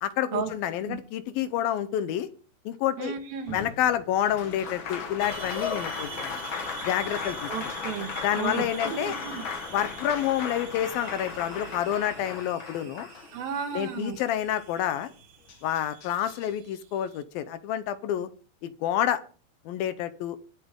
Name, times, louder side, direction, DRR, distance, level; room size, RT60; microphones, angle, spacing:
voice 1, 0.0-2.3 2.7-3.2 3.5-6.4 6.8-7.5 8.2-9.1 9.7-13.1 13.7-15.1 15.6-18.3 18.6-19.2 19.7-20.4, left 11 dB, 80° left, 12 dB, 2.7 m, -28 dB
voice 2, 3.0-3.6 7.5-9.4 13.3-14.2, right 7 dB, 75° right, 6 dB, 3.5 m, -34 dB
Applause, 3.5-13.7 15.1-15.2 15.5-16.5, left 6 dB, 55° left, 1.5 m, -37 dB
sound 1, 4.3-12.4, left 4 dB, 35° left, 1.6 m, -46 dB
sound 2, 5.2-17.2, right 7 dB, 45° right, 2.9 m, -45 dB
23.5 x 8.2 x 3.8 m, 0.38 s
omnidirectional pair, 4.2 m